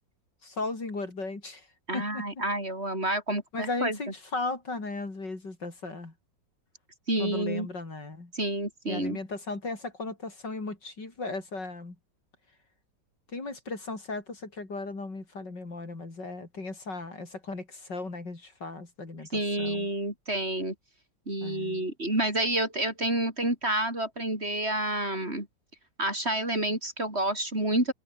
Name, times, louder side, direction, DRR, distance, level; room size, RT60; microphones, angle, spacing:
voice 1, 0.4-1.7 1.9-2.3 3.5-6.1 7.2-8.3 8.9-12.0 13.3-19.9 21.4-21.8, left 3 dB, 65° left, 5.5 m, -36 dB
voice 2, 1.9-4.0 7.1-7.7 8.3-9.2 19.3-20.7 21.3-25.5 26.0-27.9, right 1 dB, 30° right, 6.3 m, -29 dB
omnidirectional pair, 2.0 m